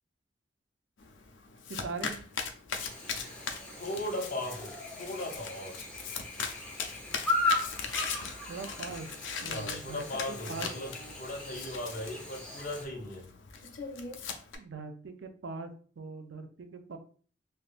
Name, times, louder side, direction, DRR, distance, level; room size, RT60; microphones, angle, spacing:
Domestic sounds home sounds, 1.0-14.6, left 6 dB, 90° left, 0.5 m, -40 dB
voice 1, 1.7-2.2 8.5-9.1 9.4-10.0 10.5-10.7 14.6-17.0, right 4 dB, 80° right, 7 dB, 0.5 m, -41 dB
Chirp tweet / Buzz, 2.7-12.8, left 2 dB, 5° left, 0.9 m, -37 dB
voice 2, 3.8-5.8 9.5-13.3, left 1 dB, 45° left, -1 dB, 0.8 m, -38 dB
3.4 x 2.6 x 2.4 m, 0.42 s
head